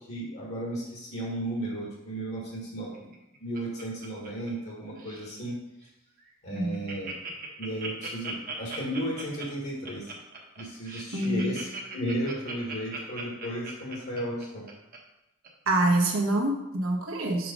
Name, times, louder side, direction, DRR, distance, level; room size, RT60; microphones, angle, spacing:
voice 1, 0.0-3.1 3.4-5.6 6.4-7.1 7.6-10.1 10.6-14.7, right 1 dB, 55° left, -4 dB, 1.5 m, -34 dB
Laughter, 2.9-4.7 5.0-5.3 5.8-5.9 6.2-6.3 6.5-15.0 15.4-15.5, right 4 dB, 45° right, 1.0 m, -39 dB
voice 2, 11.1-11.5 15.7-17.5, right 2 dB, 75° right, 1 dB, 1.1 m, -26 dB
4.8 x 4.6 x 5.2 m, 0.91 s
head